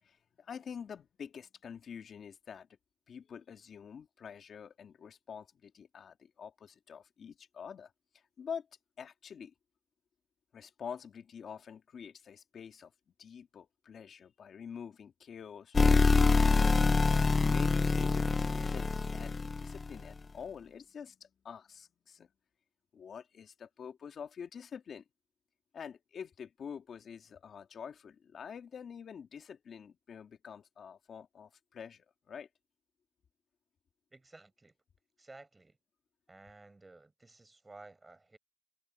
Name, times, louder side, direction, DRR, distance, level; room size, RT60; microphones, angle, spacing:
voice 1, 0.0-2.7 3.1-8.7 9.0-9.5 10.5-12.9 13.2-22.3 22.9-25.0 25.7-32.5, left 7 dB, 55° left, 2.0 m, -47 dB
sound 1, 15.7-20.0, left 4 dB, 30° left, 0.6 m, -26 dB
voice 2, 34.1-34.7 35.2-35.8 36.3-38.4, right 2 dB, 20° right, 6.7 m, -54 dB
cardioid pair, 100°, 0 cm